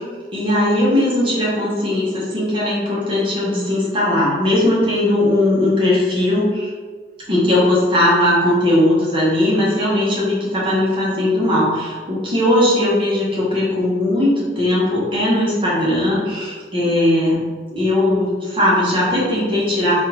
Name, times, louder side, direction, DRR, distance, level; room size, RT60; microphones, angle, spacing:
voice 1, 0.3-6.7 7.3-17.5 17.7-20.0, left 1 dB, 30° right, -6 dB, 0.8 m, -18 dB
3.5 x 2.3 x 2.8 m, 1.5 s
head